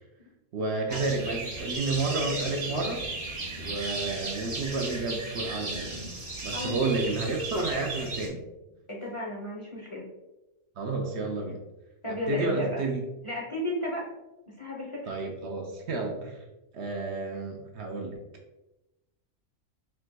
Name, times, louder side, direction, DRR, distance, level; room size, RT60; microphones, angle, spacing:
voice 1, 0.5-3.1 3.6-5.9 6.4-8.4 10.8-11.6 12.1-13.0 15.1-16.4 16.7-18.1, right 3 dB, 65° right, 2 dB, 0.8 m, -31 dB
sound 1, 0.9-8.3, right 2 dB, 45° right, 1.2 m, -35 dB
voice 2, 6.5-7.0 8.9-10.1 12.0-12.8 13.2-14.1 14.5-15.1, left 1 dB, 30° left, -3 dB, 0.6 m, -34 dB
4.5 x 3.6 x 2.2 m, 1.0 s
omnidirectional pair, 1.4 m